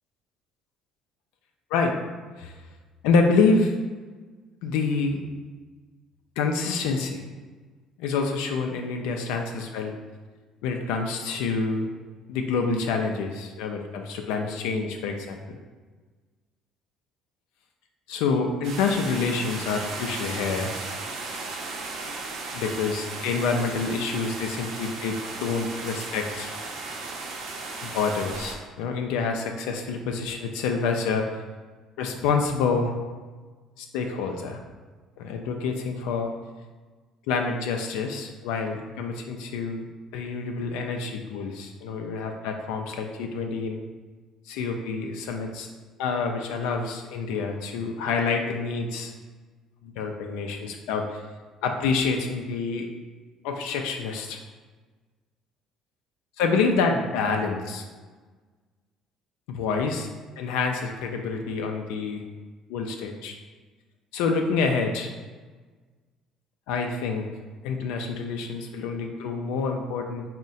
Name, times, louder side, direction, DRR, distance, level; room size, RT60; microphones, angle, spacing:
voice 1, 3.0-3.7 4.6-5.2 6.4-7.3 8.0-9.9 10.6-11.9 12.3-15.6 18.1-20.7 22.5-26.5 27.8-31.3 32.0-32.9 33.8-34.6 35.2-36.3 37.3-39.8 40.1-43.8 44.5-45.7 46.0-49.1 49.8-51.2 51.6-52.9 53.4-54.4 56.4-57.8 59.5-60.1 60.4-62.2 62.7-63.4 64.1-65.1 66.7-67.2 67.6-70.2, left 4 dB, 90° left, 3 dB, 0.3 m, -27 dB
sound 1, 18.6-28.5, right 3 dB, 75° right, 0.6 m, -35 dB
3.6 x 2.1 x 4.0 m, 1.4 s
cardioid pair, 100°, 0 cm